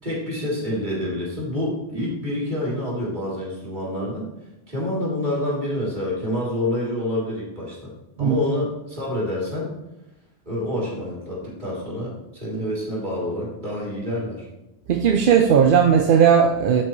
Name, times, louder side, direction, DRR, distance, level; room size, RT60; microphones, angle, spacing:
voice 1, 0.0-4.3 4.7-7.9 8.2-9.7 10.4-14.5, left 1 dB, 45° right, -6 dB, 3.5 m, -27 dB
voice 2, 14.9-16.8, right 7 dB, 60° right, 5 dB, 0.7 m, -16 dB
13.0 x 5.8 x 3.2 m, 0.96 s
omnidirectional pair, 1.1 m